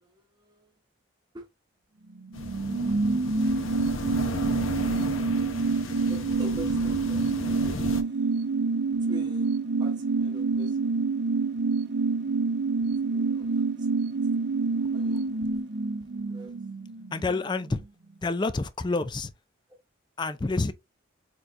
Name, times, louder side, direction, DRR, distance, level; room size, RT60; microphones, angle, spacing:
voice 1, 0.0-0.6 1.3-1.4 6.1-8.5 9.0-10.8 13.1-13.6 14.7-15.2 16.3-16.5, equal, 20° right, 1.0 m, -45 dB
sound 1, 2.2-17.4 17.7-17.8, right 4 dB, 55° right, 0.5 m, -27 dB
sound 2, 2.3-8.0, left 3 dB, 85° left, 0.9 m, -35 dB
voice 2, 17.1-17.8 18.2-19.3 20.2-20.7, left 3 dB, 20° left, 0.4 m, -28 dB
4.5 x 3.9 x 2.5 m
head